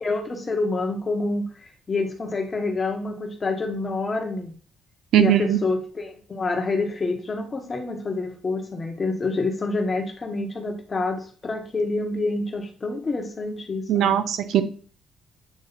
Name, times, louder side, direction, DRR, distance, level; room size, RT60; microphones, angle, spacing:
voice 1, 0.0-4.5 5.2-14.2, left 3 dB, 35° left, 4 dB, 1.4 m, -27 dB
voice 2, 5.1-5.6 13.9-14.6, right 10 dB, 80° right, 10 dB, 0.7 m, -19 dB
8.4 x 3.1 x 4.2 m, 0.41 s
cardioid pair, 90°, 0 cm